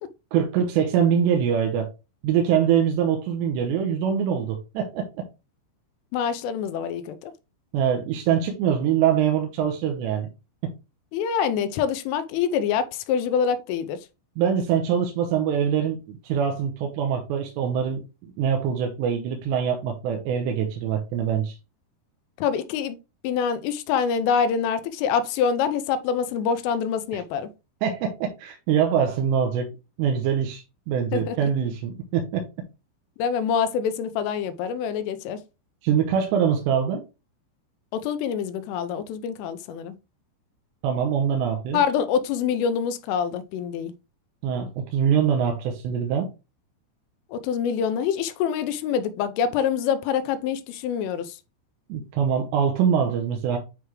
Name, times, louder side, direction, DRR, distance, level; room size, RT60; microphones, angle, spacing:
voice 1, 0.3-1.9 2.2-5.0 7.7-10.3 14.4-21.6 27.1-27.2 27.8-29.7 30.0-32.4 35.8-37.0 40.8-41.8 44.4-46.3 51.9-53.6, right 8 dB, 75° right, 2.7 m, -24 dB
voice 2, 6.1-7.3 11.1-14.0 22.4-23.0 23.2-27.5 31.1-31.5 33.2-35.4 37.9-40.0 41.7-43.9 47.3-51.4, left 7 dB, 90° left, 3.2 m, -25 dB
9.5 x 3.4 x 3.0 m
omnidirectional pair, 5.8 m